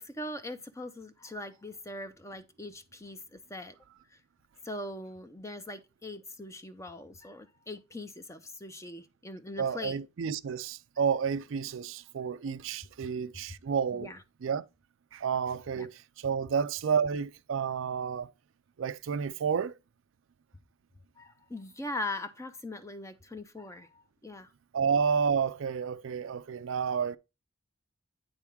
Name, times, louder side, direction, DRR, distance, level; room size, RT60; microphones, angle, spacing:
voice 1, 0.0-3.8 4.1-4.2 4.6-10.0 13.9-14.2 15.7-15.9 21.2-24.5, left 1 dB, 15° left, 0.7 m, -41 dB
voice 2, 9.6-14.1 14.4-14.6 15.1-18.3 18.8-19.7 24.7-27.2, right 6 dB, 70° right, 0.4 m, -30 dB
9.3 x 3.5 x 4.5 m
head